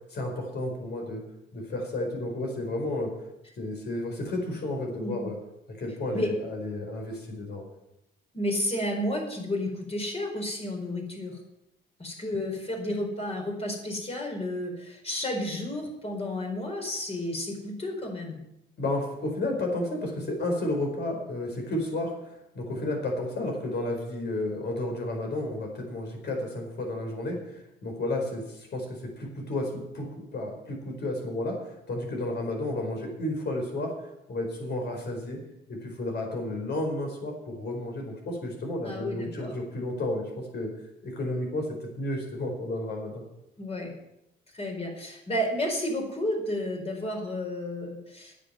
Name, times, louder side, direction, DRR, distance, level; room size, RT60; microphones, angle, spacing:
voice 1, 0.1-1.2 1.5-3.1 3.6-5.3 5.8-7.7 18.8-33.9 34.3-35.4 35.7-40.7 41.0-41.7 42.0-43.2, left 1 dB, 60° left, 2 dB, 4.7 m, -32 dB
voice 2, 8.3-11.4 12.0-18.4 38.8-39.5 43.6-43.9 44.5-48.3, left 1 dB, 30° left, 1 dB, 4.7 m, -32 dB
9.7 x 7.9 x 9.3 m, 0.86 s
cardioid pair, 90°, 20 cm